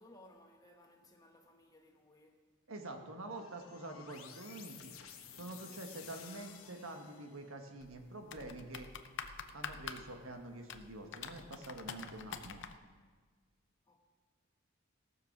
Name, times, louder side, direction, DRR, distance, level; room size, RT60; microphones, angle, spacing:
voice 1, 0.0-2.5 13.9-14.0, left 1 dB, 20° left, 1.1 m, -61 dB
voice 2, 2.7-4.9 5.3-8.9 9.5-12.6, right 2 dB, 75° right, 1.4 m, -47 dB
sound 1, 3.3-7.6, left 8 dB, 80° left, 1.1 m, -54 dB
sound 2, 7.8-12.8, left 6 dB, 55° left, 0.7 m, -47 dB
17.5 x 6.9 x 6.0 m
head